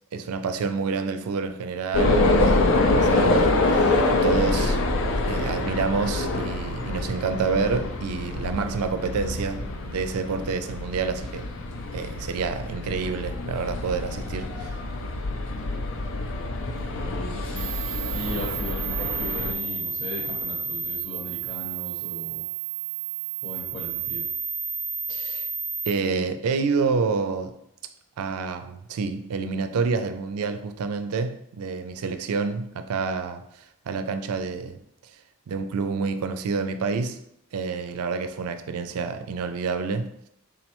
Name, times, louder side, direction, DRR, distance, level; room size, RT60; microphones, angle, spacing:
voice 1, 0.1-4.8 5.3-11.5 11.9-14.8 25.1-25.5 25.8-27.6 28.2-33.4 33.9-34.8 35.5-37.2 37.5-40.1, right 4 dB, 90° right, 0.4 m, -28 dB
sound 1, 1.9-19.5, left 2 dB, 65° left, 0.4 m, -26 dB
voice 2, 16.9-22.5 23.4-24.3, left 1 dB, 25° left, 0.8 m, -37 dB
sound 2, 17.6-25.9, right 7 dB, 35° right, 0.6 m, -31 dB
3.8 x 3.1 x 2.9 m
head